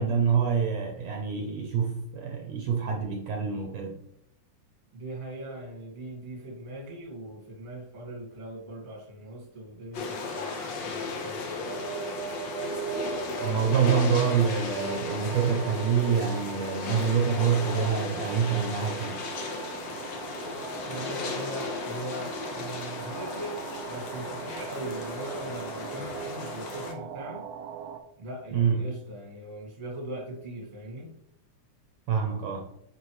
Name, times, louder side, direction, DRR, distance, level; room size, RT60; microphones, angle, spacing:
voice 1, 0.0-4.0 13.4-19.2 28.5-28.8 32.1-32.6, right 6 dB, 70° right, 1 dB, 1.7 m, -26 dB
voice 2, 4.9-11.8 20.9-23.6 23.8-27.4 28.2-31.1, right 1 dB, 20° right, -1 dB, 1.5 m, -40 dB
sound 1, 9.9-26.9, left 4 dB, 70° left, 1.1 m, -36 dB
sound 2, 11.6-28.0, right 8 dB, 90° right, 1.4 m, -40 dB
9.7 x 4.8 x 3.2 m, 0.77 s
omnidirectional pair, 3.5 m